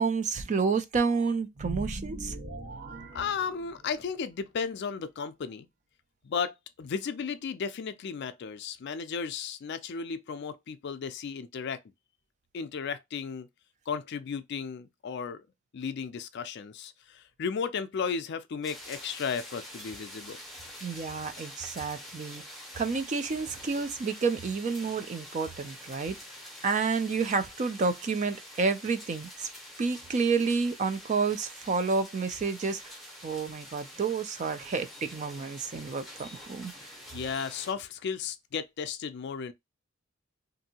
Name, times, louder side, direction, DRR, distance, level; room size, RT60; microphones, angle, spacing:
voice 1, 0.0-2.3 20.8-22.4 22.8-26.2 26.6-29.5 29.8-33.0 33.2-36.7, right 4 dB, 35° right, 0.3 m, -30 dB
sound 1, 1.5-4.1, right 1 dB, 55° right, 1.2 m, -40 dB
voice 2, 3.1-5.7 6.2-11.8 12.5-13.5 13.9-15.4 15.7-20.4 37.1-39.5, left 6 dB, 55° left, 0.3 m, -34 dB
sound 2, 18.6-37.7, equal, ahead, 0.7 m, -46 dB
2.6 x 2.6 x 2.8 m
head